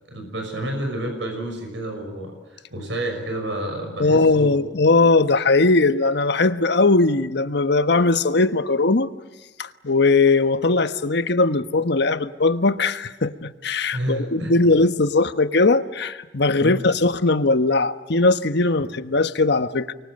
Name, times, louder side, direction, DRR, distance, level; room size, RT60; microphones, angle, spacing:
voice 1, 0.1-4.5 13.9-14.5 16.6-16.8, right 1 dB, 85° right, 4 dB, 6.1 m, -30 dB
voice 2, 4.0-9.1 9.6-19.9, left 3 dB, 65° left, 11 dB, 1.2 m, -19 dB
29.5 x 24.5 x 7.9 m, 1.2 s
head